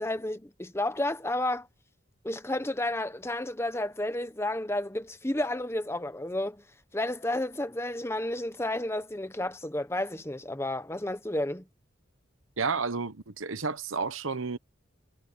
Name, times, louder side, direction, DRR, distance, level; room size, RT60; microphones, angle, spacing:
voice 1, 0.0-1.7 2.2-6.6 6.9-11.6, left 1 dB, 15° left, 1.0 m, -31 dB
voice 2, 12.6-14.6, right 4 dB, 80° right, 1.1 m, -31 dB
head